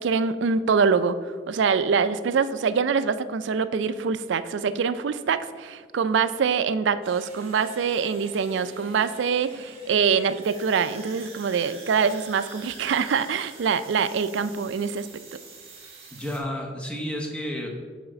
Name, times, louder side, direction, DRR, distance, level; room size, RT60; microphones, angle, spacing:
voice 1, 0.0-15.1, right 6 dB, 75° right, 13 dB, 0.4 m, -24 dB
sound 1, 7.0-16.4, right 3 dB, 30° right, 1.3 m, -46 dB
voice 2, 16.1-17.7, equal, 5° left, 0 dB, 0.8 m, -31 dB
7.2 x 4.2 x 5.0 m, 1.6 s
head